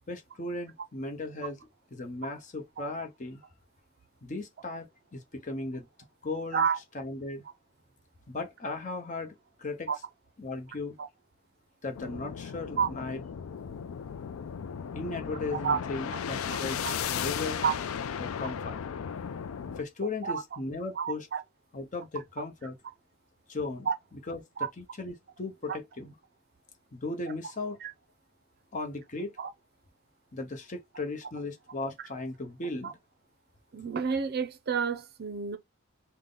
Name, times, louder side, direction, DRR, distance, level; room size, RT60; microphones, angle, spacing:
voice 1, 0.1-1.6 1.9-3.4 4.2-5.9 6.2-6.6 6.9-7.4 8.3-9.9 10.4-11.0 11.8-13.2 14.9-17.6 18.2-18.8 19.8-21.3 21.7-22.8 23.5-23.9 24.3-26.1 26.9-27.8 28.7-29.3 30.3-32.9, left 2 dB, 35° left, 0.8 m, -37 dB
sound 1, 11.9-19.8, left 7 dB, 75° left, 0.4 m, -36 dB
voice 2, 21.0-21.4 23.9-24.0 27.8-27.9 29.4-29.5 33.7-35.6, right 6 dB, 50° right, 0.5 m, -29 dB
3.5 x 2.1 x 3.8 m
head